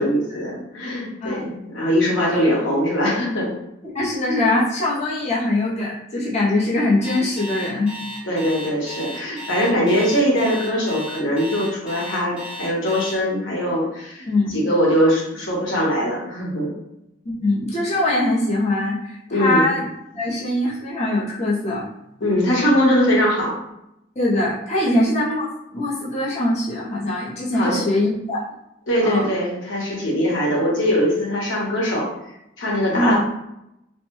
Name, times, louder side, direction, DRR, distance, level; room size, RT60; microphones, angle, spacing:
voice 1, 0.0-3.5 8.2-16.7 19.3-19.7 22.2-23.5 27.5-27.8 28.9-32.1 32.6-33.2, equal, 85° left, -4 dB, 1.0 m, -21 dB
voice 2, 3.9-8.0 14.3-14.5 17.3-19.9 20.1-21.9 24.2-25.5 25.7-28.5 29.0-29.2 32.9-33.2, left 1 dB, 35° left, -7 dB, 0.6 m, -22 dB
Alarm, 7.0-13.1, left 1 dB, 5° right, 0.7 m, -35 dB
3.0 x 2.1 x 3.0 m, 0.85 s
head